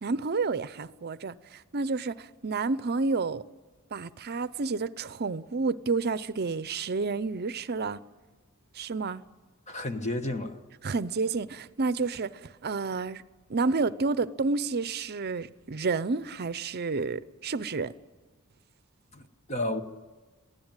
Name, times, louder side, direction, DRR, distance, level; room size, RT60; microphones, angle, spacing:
voice 1, 0.0-3.4 3.9-8.0 8.7-9.2 10.8-13.2 13.5-17.9, right 4 dB, 50° right, 0.6 m, -30 dB
voice 2, 9.7-10.6 19.1-19.8, left 1 dB, 35° left, 1.3 m, -32 dB
22.5 x 16.0 x 9.0 m
head